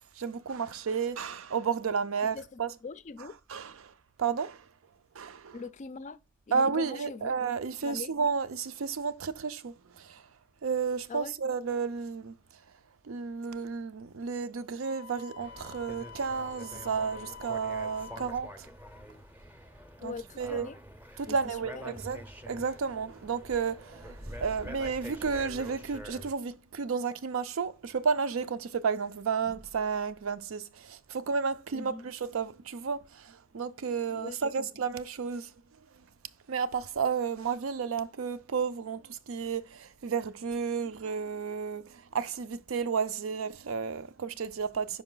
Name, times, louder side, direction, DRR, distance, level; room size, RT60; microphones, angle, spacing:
voice 1, 0.0-2.7 3.5-3.9 4.2-4.7 5.1-5.6 6.5-10.3 10.6-12.3 13.0-18.7 20.0-20.7 21.2-35.5 35.9-36.0 36.5-45.0, right 5 dB, 80° right, 0.5 m, -32 dB
voice 2, 2.3-3.3 5.5-6.2 6.5-7.4 7.8-8.1 11.1-11.4 20.0-20.8 21.3-22.0 31.7-32.1 34.1-34.7, left 4 dB, 35° left, 0.4 m, -42 dB
Wind instrument woodwind instrument, 14.8-18.4, left 7 dB, 85° left, 0.6 m, -47 dB
sound 1, 15.4-26.3, equal, 10° right, 0.6 m, -46 dB
5.3 x 4.9 x 3.8 m
head